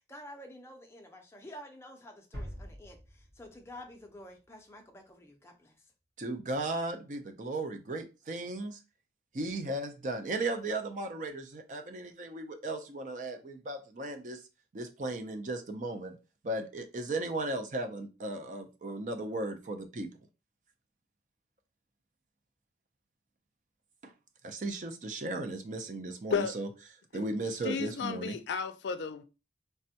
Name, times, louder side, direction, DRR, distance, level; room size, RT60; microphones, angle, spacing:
voice 1, 0.0-5.7, left 1 dB, 15° left, 0.5 m, -50 dB
sound 1, 2.3-5.0, equal, 75° right, 1.3 m, -46 dB
voice 2, 6.2-8.8 9.3-14.4 14.7-16.2 16.4-20.1 24.0-24.1 24.4-26.7 27.1-28.4, right 2 dB, 45° right, 0.4 m, -36 dB
voice 3, 27.6-29.2, left 6 dB, 85° left, 0.4 m, -33 dB
3.3 x 2.2 x 2.7 m
head